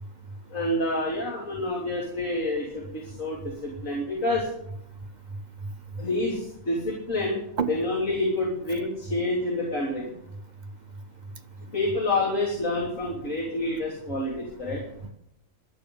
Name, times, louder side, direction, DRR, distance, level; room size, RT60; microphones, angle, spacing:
voice 1, 0.5-4.5 6.0-7.4 7.7-10.0 11.7-14.8, left 2 dB, 75° left, -3 dB, 3.7 m, -28 dB
voice 2, 5.3-6.0 7.6-7.7 9.1-9.2 10.1-10.2 14.4-14.5 15.0-15.1, right 5 dB, 35° right, 8 dB, 1.0 m, -33 dB
12.5 x 8.4 x 8.5 m, 0.72 s
omnidirectional pair, 1.4 m